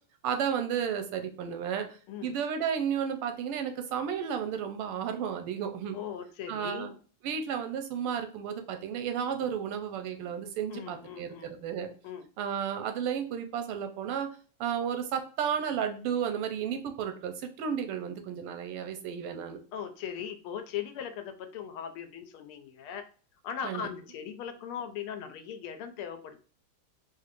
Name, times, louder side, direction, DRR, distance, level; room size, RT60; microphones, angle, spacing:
voice 1, 0.2-6.0 6.5-6.9 7.2-11.9 12.4-14.3 14.6-19.6 23.6-23.8, right 8 dB, 90° right, 7 dB, 1.6 m, -33 dB
voice 2, 5.9-7.0 10.7-11.6 12.0-12.2 19.7-23.0 23.4-26.4, left 8 dB, 80° left, 7 dB, 1.5 m, -39 dB
4.4 x 2.6 x 2.5 m, 0.39 s
omnidirectional pair, 2.4 m